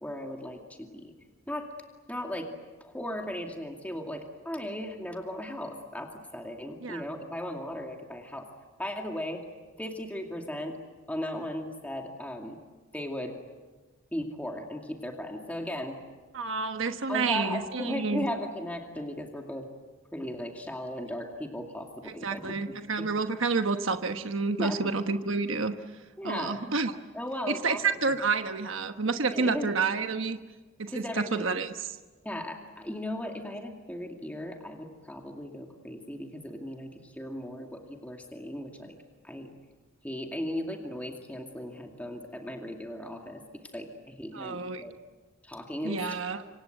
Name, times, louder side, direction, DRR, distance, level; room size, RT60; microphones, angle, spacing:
voice 1, 0.0-1.1 1.5-1.7 2.1-2.5 2.8-8.5 8.8-9.4 9.8-10.8 11.1-12.6 12.9-13.4 14.1-16.0 17.1-19.7 20.1-23.1 24.6-24.8 26.2-26.6 27.1-28.0 29.3-29.7 30.9-31.6 32.2-39.0 39.2-39.5 40.0-44.9 45.4-46.1, left 1 dB, 5° left, 2 dB, 2.4 m, -37 dB
voice 2, 16.3-18.3 22.1-25.7 26.2-26.9 27.6-30.4 30.8-31.7 44.3-44.8 45.8-46.4, right 4 dB, 65° right, 7 dB, 1.2 m, -29 dB
27.0 x 25.0 x 8.0 m, 1.3 s
head